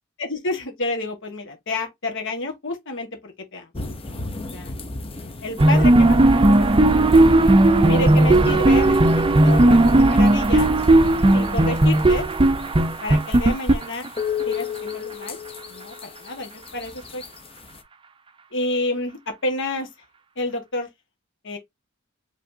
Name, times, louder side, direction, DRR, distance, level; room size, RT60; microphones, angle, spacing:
voice 1, 0.2-3.7 4.0-4.2 4.5-4.7 5.4-6.2 6.5-6.7 7.7-9.1 9.4-10.7 11.3-12.2 13.0-14.1 14.5-15.4 15.7-17.2 18.5-19.9 20.4-20.9 21.4-21.6, left 2 dB, 60° left, 1.6 m, -29 dB
sound 1, 3.7-17.8, left 5 dB, 25° left, 0.8 m, -36 dB
sound 2, 5.6-14.4, right 2 dB, 25° right, 0.5 m, -16 dB
5.1 x 3.4 x 2.8 m
head